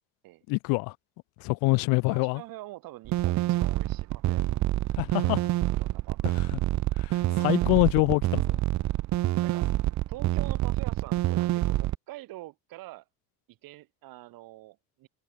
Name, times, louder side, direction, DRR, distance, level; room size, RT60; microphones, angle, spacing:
voice 1, 0.5-0.9 1.4-2.4 5.0-5.4 6.5-6.6 7.0-8.6, left 29 dB, 85° left, 0.7 m, -25 dB
voice 2, 2.0-4.7 5.7-6.2 9.4-9.7 10.1-13.0 13.5-15.1, right 18 dB, 75° right, 6.2 m, -45 dB
sound 1, 3.0-11.9, right 16 dB, 55° right, 0.7 m, -27 dB
cardioid pair, 100°, 35 cm